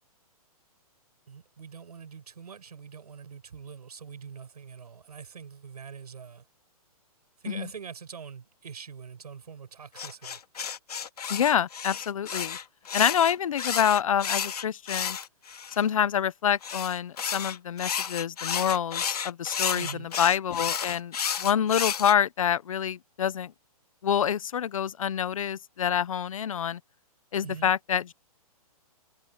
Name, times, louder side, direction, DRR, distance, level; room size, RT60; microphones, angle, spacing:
voice 1, 1.3-6.4 7.4-10.4 19.7-20.1 27.4-27.7, right 6 dB, 85° right, 7.8 m, -44 dB
sound 1, 10.0-15.8 16.6-22.1, left 7 dB, 85° left, 2.1 m, -32 dB
voice 2, 11.3-12.6 12.9-15.2 15.8-23.5 24.0-26.8 27.3-28.1, left 9 dB, 60° left, 0.8 m, -27 dB
hypercardioid pair, 175°, 19 cm